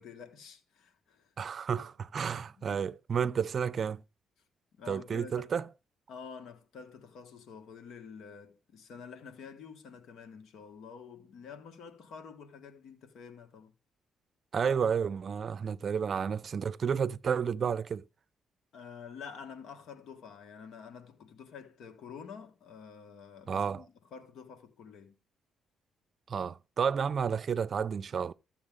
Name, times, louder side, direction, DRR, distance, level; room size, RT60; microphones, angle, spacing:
voice 1, 0.0-1.3 2.2-2.8 4.8-5.7 6.1-13.7 18.7-25.2, left 6 dB, 70° left, 1.7 m, -48 dB
voice 2, 1.4-4.0 4.9-5.7 14.5-18.0 23.5-23.8 26.3-28.3, right 7 dB, 50° right, 0.5 m, -31 dB
13.5 x 7.1 x 3.7 m
cardioid pair, 90°, 0 cm